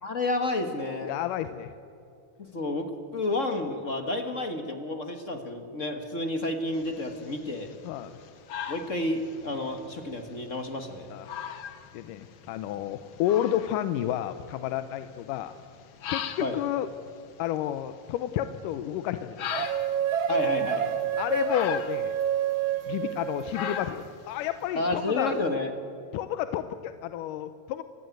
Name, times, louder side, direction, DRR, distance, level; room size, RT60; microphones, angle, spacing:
voice 1, 0.0-1.1 2.4-7.7 8.7-11.1 16.4-16.6 20.3-20.9 24.8-25.7, left 2 dB, 40° left, 6 dB, 1.1 m, -30 dB
voice 2, 1.0-1.7 7.8-8.2 11.1-11.3 11.9-15.5 16.1-16.9 17.4-19.7 21.2-22.1 22.9-25.3 26.1-27.8, left 12 dB, 90° left, 11 dB, 2.3 m, -31 dB
sound 1, 6.7-25.4, left 8 dB, 60° left, 1.4 m, -41 dB
sound 2, 19.5-24.0, right 10 dB, 80° right, 1.1 m, -29 dB
29.0 x 15.5 x 9.3 m, 2.5 s
omnidirectional pair, 3.6 m